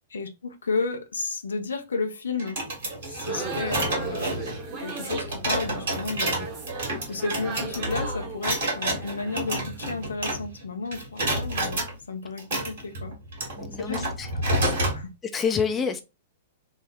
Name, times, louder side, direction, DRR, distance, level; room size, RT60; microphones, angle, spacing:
voice 1, 0.1-2.6 3.1-6.5 7.1-13.2 13.8-14.1 14.3-15.1, left 4 dB, 75° left, 0.6 m, -32 dB
sound 1, 2.4-10.6 10.9-11.9 12.4-15.0, right 1 dB, 60° right, 1.6 m, -29 dB
sound 2, 3.0-10.0, right 4 dB, 35° right, 1.0 m, -37 dB
voice 2, 13.6-14.3 14.7-14.8 15.3-16.0, left 6 dB, 20° left, 0.4 m, -27 dB
3.3 x 2.1 x 3.5 m
figure-of-eight pair, 105°, 0 cm